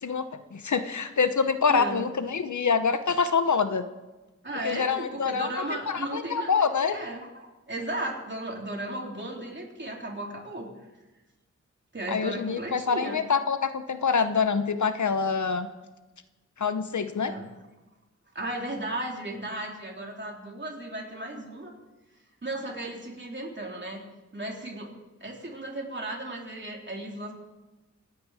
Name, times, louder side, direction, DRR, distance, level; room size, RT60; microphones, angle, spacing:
voice 1, 0.0-3.9 4.6-7.0 12.1-15.7 16.6-17.3, left 5 dB, 70° left, 11 dB, 0.8 m, -26 dB
voice 2, 1.7-2.0 4.4-6.5 6.9-10.7 11.9-13.2 17.2-17.5 18.3-21.7 22.4-24.0 24.3-24.9 25.2-27.3, right 1 dB, 35° right, -1 dB, 3.4 m, -35 dB
26.0 x 9.3 x 4.9 m, 1.2 s
wide cardioid pair, 80°, 30 cm